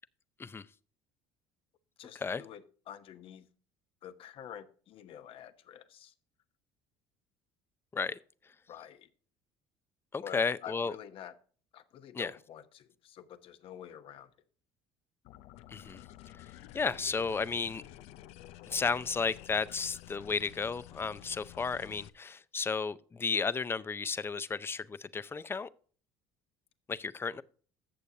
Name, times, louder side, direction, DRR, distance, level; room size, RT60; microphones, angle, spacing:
voice 1, 2.0-3.5 4.0-6.1 8.7-9.1 10.2-11.3 11.7-14.3, left 9 dB, 55° left, 1.0 m, -48 dB
voice 2, 10.1-10.9 12.1-12.3 15.7-16.0 16.3-17.8 18.7-25.7 26.9-27.4, left 5 dB, 20° left, 0.5 m, -33 dB
sound 1, 15.2-22.1, left 13 dB, 70° left, 0.6 m, -51 dB
15.0 x 6.8 x 2.8 m
supercardioid pair, 105°, 11 cm